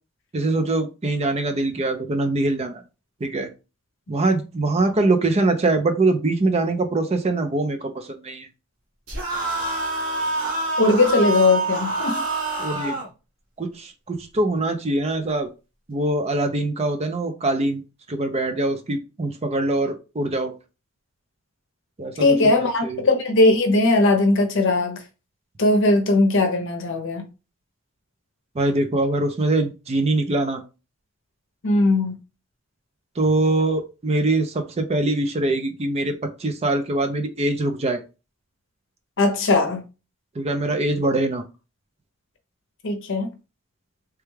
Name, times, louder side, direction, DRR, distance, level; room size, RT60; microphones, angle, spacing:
voice 1, 0.3-2.8 3.2-3.5 4.1-8.5 12.6-13.0 13.6-15.5 15.9-17.8 18.1-20.5 22.0-23.1 28.6-30.6 33.2-38.0 40.4-41.4, right 2 dB, 30° right, 0.5 m, -23 dB
sound 1, 9.1-13.1, right 2 dB, 70° right, 1.4 m, -26 dB
voice 2, 10.8-12.2 22.2-25.0 25.6-27.3 31.6-32.2 39.2-39.8 42.8-43.3, left 2 dB, 65° left, 0.7 m, -19 dB
3.3 x 2.2 x 3.2 m
head